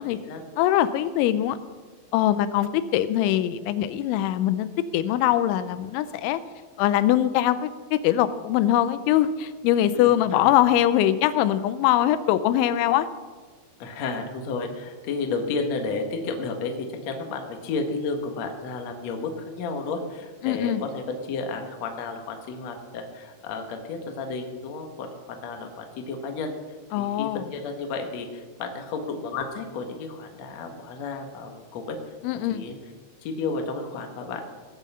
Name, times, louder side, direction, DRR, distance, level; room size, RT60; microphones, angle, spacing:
voice 1, 0.0-0.4 10.0-10.2 10.4-10.6 13.8-26.6 27.0-32.0 32.5-32.8 33.2-34.6, left 4 dB, 70° left, 4 dB, 1.6 m, -32 dB
voice 2, 0.6-1.6 2.1-6.4 6.8-13.1 20.4-20.8 26.9-27.4 32.2-32.6, left 12 dB, 85° left, 13 dB, 3.0 m, -22 dB
18.0 x 8.4 x 5.5 m, 1.4 s
omnidirectional pair, 5.3 m